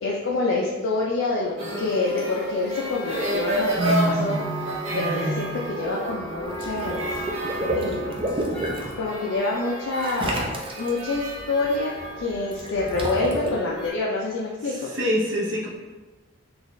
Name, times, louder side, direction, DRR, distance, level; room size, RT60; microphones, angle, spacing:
voice 1, 0.0-4.4 4.6-5.5 5.8-7.2 7.7-8.2 9.0-10.5 10.8-11.9 12.2-14.9, left 3 dB, 65° left, -3 dB, 0.4 m, -27 dB
sound 1, 1.6-13.9, right 1 dB, 90° right, 1.1 m, -31 dB
voice 2, 3.7-4.6 4.9-5.4 14.9-15.7, right 1 dB, 60° right, -3 dB, 0.8 m, -25 dB
Water / Liquid, 6.4-8.9 10.0-11.0 12.5-13.5, right 1 dB, 25° right, 0.4 m, -29 dB
3.9 x 2.3 x 3.1 m, 1.2 s
head